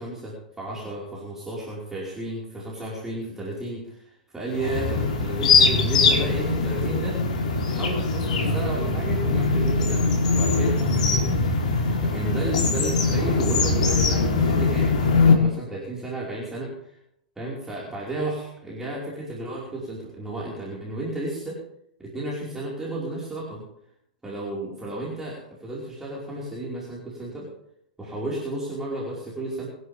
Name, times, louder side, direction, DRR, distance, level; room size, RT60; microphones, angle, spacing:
voice 1, 0.0-7.2 7.6-11.2 12.0-17.0 17.4-21.6 22.0-23.6 24.2-27.5 28.0-29.7, right 2 dB, 10° right, -6 dB, 5.1 m, -33 dB
sound 1, 4.5-15.3, left 3 dB, 60° left, 3.7 m, -22 dB
24.5 x 11.0 x 3.6 m, 0.74 s
figure-of-eight pair, 100°, 4 cm